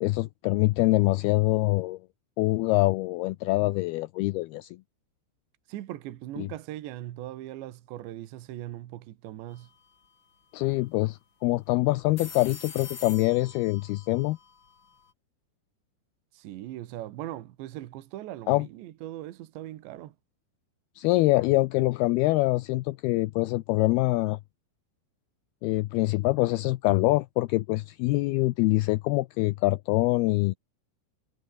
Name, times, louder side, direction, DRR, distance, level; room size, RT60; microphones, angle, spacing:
voice 1, 0.0-2.0 2.4-4.8 6.4-6.5 10.5-14.4 18.5-18.7 21.0-24.4 25.6-30.5, left 20 dB, 80° left, 2.3 m, -25 dB
voice 2, 5.7-9.7 16.3-20.2, right 14 dB, 75° right, 3.6 m, -39 dB
sound 1, 9.5-9.8 10.0-10.1 11.9-15.1, left 6 dB, 35° left, 2.3 m, -45 dB
omnidirectional pair, 5.2 m